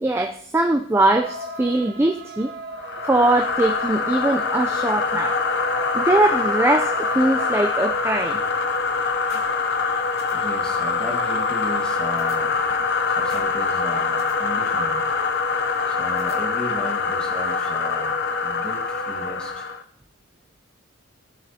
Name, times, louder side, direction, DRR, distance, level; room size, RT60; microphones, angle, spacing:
voice 1, 0.0-2.5 3.0-5.4 5.9-8.4, right 2 dB, 10° right, 4 dB, 0.3 m, -21 dB
sound 1, 1.2-8.5, right 2 dB, 50° right, 0.8 m, -37 dB
sound 2, 2.8-19.8, left 4 dB, 50° left, 0.6 m, -24 dB
sound 3, 9.3-9.4 9.8-9.9 10.2-10.3 12.2-12.9 13.3-13.4 13.8-14.3 16.2-16.9, left 3 dB, 70° left, 1.8 m, -45 dB
voice 2, 10.2-12.5 13.1-15.0 15.9-19.7, equal, 5° left, 0 dB, 1.5 m, -36 dB
15.5 x 7.4 x 2.8 m, 0.71 s
head